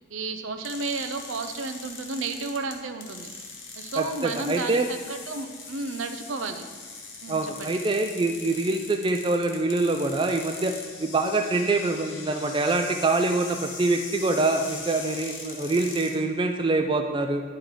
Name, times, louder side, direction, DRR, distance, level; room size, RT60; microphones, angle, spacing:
voice 1, 0.1-3.3 3.8-6.7 7.2-7.8, right 3 dB, 75° right, 7 dB, 0.6 m, -32 dB
sound 1, 0.6-16.2, left 4 dB, 70° left, 1.1 m, -41 dB
voice 2, 4.0-4.9 7.3-17.4, right 2 dB, 25° right, 4 dB, 0.3 m, -25 dB
10.0 x 3.8 x 4.8 m, 1.5 s
head